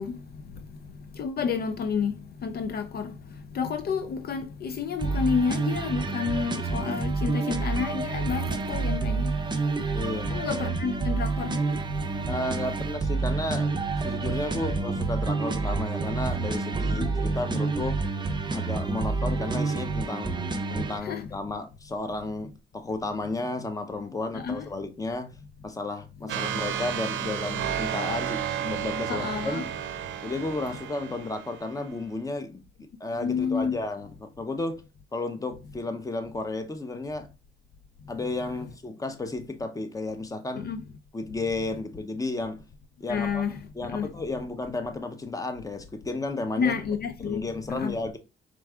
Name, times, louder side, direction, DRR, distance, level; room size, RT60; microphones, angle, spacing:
voice 1, 0.0-9.9 10.3-12.3 16.8-17.1 21.0-21.3 24.3-24.7 29.1-29.7 33.2-33.8 40.6-40.8 43.1-44.1 46.6-48.0, left 6 dB, 55° left, 0.4 m, -30 dB
sound 1, 5.0-21.0, right 3 dB, 20° right, 0.5 m, -28 dB
sound 2, 7.8-15.0, right 4 dB, 85° left, 1.7 m, -43 dB
voice 2, 9.9-10.5 12.3-13.7 14.0-18.0 18.5-20.4 20.7-25.3 25.6-29.6 30.2-32.6 33.0-34.8 35.1-37.3 38.1-40.7 41.1-42.6 43.0-43.4 43.8-46.8 47.3-48.2, left 2 dB, 15° left, 0.7 m, -33 dB
sound 3, 26.3-31.8, right 9 dB, 75° right, 0.6 m, -32 dB
4.6 x 3.6 x 2.3 m
cardioid pair, 90°, 20 cm